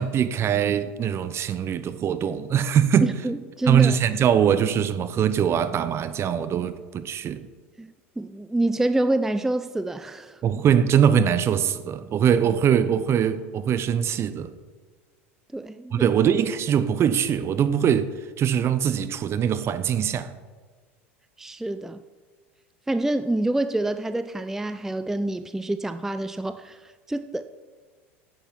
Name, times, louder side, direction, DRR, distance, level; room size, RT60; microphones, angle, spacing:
voice 1, 0.0-3.1 3.7-7.5 10.4-14.5 15.9-18.1 18.4-20.3, right 8 dB, 40° right, 0.7 m, -22 dB
voice 2, 3.0-4.0 7.8-10.4 15.5-16.1 21.4-22.0 22.9-27.4, right 2 dB, 5° right, 0.3 m, -27 dB
8.8 x 8.0 x 5.5 m
hypercardioid pair, 85°, 7 cm